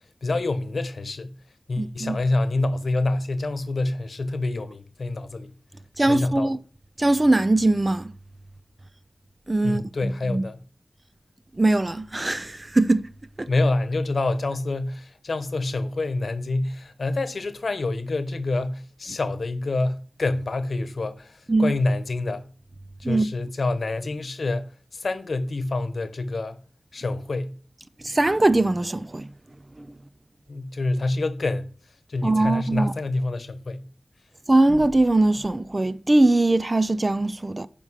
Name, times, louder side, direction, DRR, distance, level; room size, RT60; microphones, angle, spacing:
voice 1, 0.2-1.3 1.7-5.5 6.1-6.5 9.6-10.6 13.5-22.5 23.0-24.7 24.9-26.6 26.9-27.5 30.5-31.7 32.1-33.8, left 2 dB, 80° left, 1.0 m, -27 dB
voice 2, 1.8-2.2 6.0-6.6 7.0-8.1 9.5-10.4 11.5-13.1 13.4-13.5 21.5-21.7 23.0-23.3 28.0-29.3 29.8-29.9 32.2-32.9 34.5-37.7, right 2 dB, 30° right, 0.5 m, -21 dB
9.7 x 5.3 x 5.6 m
wide cardioid pair, 80°, 0 cm